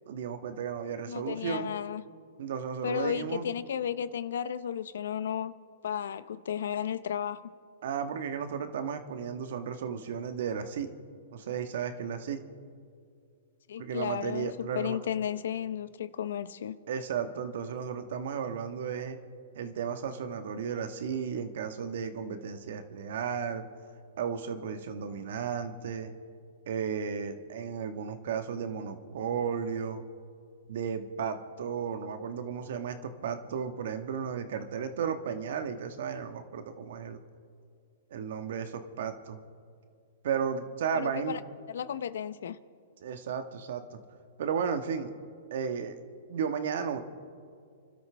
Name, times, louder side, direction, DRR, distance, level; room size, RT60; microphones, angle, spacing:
voice 1, 0.1-1.7 2.4-3.5 7.8-10.9 11.3-12.4 13.8-15.0 16.9-19.2 19.5-23.6 24.2-26.1 26.7-30.0 30.7-37.2 38.1-39.4 40.2-41.4 43.0-44.0 44.4-45.1 45.5-45.9 46.3-47.0, right 7 dB, 65° right, 8 dB, 1.4 m, -34 dB
voice 2, 1.1-2.0 2.8-5.5 5.8-7.4 13.7-16.8 40.9-41.4 41.7-42.6, left 9 dB, 75° left, 15 dB, 0.7 m, -33 dB
30.0 x 12.5 x 3.4 m, 2.3 s
hypercardioid pair, 135°, 0 cm